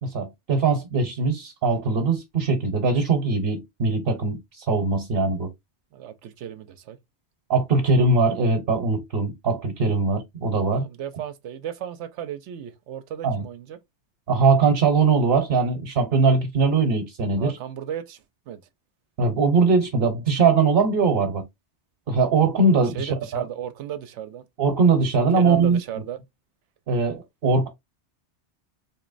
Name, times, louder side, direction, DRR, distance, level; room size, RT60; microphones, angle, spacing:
voice 1, 0.0-5.5 7.5-10.9 13.2-13.4 14.3-17.6 19.2-21.4 22.1-23.4 24.6-25.8 26.9-27.7, right 4 dB, 60° right, 1.0 m, -21 dB
voice 2, 5.9-7.0 10.8-13.8 17.4-18.6 22.7-24.4 25.4-26.2, right 10 dB, 85° right, 0.9 m, -35 dB
4.2 x 3.0 x 2.5 m
omnidirectional pair, 1.2 m